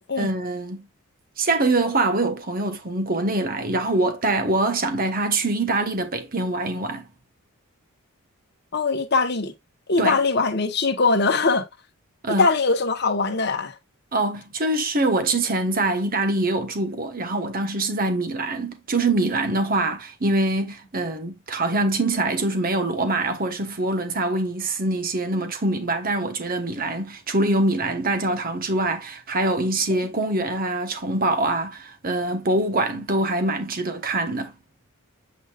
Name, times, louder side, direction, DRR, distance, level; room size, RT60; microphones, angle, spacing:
voice 1, 0.2-0.9 1.4-7.0 10.0-10.2 12.2-12.5 14.1-34.5, right 2 dB, 40° right, 1.2 m, -24 dB
voice 2, 8.7-9.5 9.9-11.6 12.3-13.7 29.9-30.1, left 4 dB, 50° left, 1.1 m, -21 dB
8.1 x 5.3 x 2.5 m
head